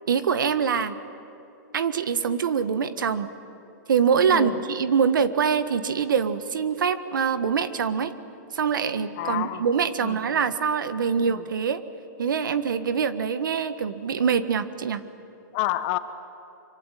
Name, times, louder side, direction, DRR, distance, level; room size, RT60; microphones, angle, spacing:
voice 1, 0.1-0.9 1.7-3.3 3.9-8.1 8.5-11.8 12.2-15.0, right 6 dB, 85° right, 11 dB, 1.6 m, -24 dB
voice 2, 9.2-9.7 10.0-10.4 11.2-11.4 15.5-16.0, left 15 dB, 35° left, 11 dB, 1.3 m, -29 dB
24.5 x 24.5 x 9.3 m, 2.7 s
hypercardioid pair, 150°, 10 cm